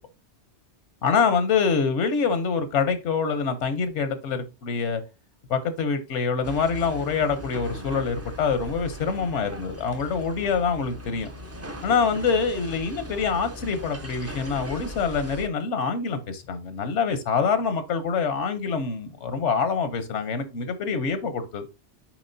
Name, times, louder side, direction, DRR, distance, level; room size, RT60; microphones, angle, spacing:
voice 1, 1.0-5.0 5.5-11.3 11.8-21.6, left 5 dB, 80° left, 1.1 m, -25 dB
sound 1, 6.4-15.5, equal, 20° right, 0.4 m, -39 dB
7.3 x 4.9 x 2.6 m
omnidirectional pair, 1.2 m